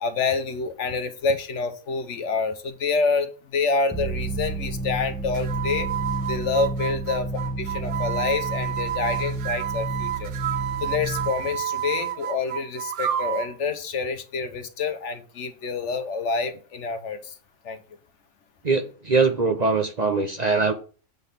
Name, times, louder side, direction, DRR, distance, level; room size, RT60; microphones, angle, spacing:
voice 1, 0.0-5.9 6.3-7.3 7.6-10.3 10.8-17.3 17.6-17.8, left 4 dB, 65° left, 9 dB, 1.2 m, -27 dB
sound 1, 3.9-11.3, right 2 dB, 5° left, 1.2 m, -31 dB
sound 2, 5.3-13.5, right 11 dB, 70° right, 1.0 m, -30 dB
voice 2, 18.6-20.7, right 4 dB, 40° right, 6 dB, 0.8 m, -22 dB
8.0 x 3.9 x 6.7 m, 0.39 s
omnidirectional pair, 1.3 m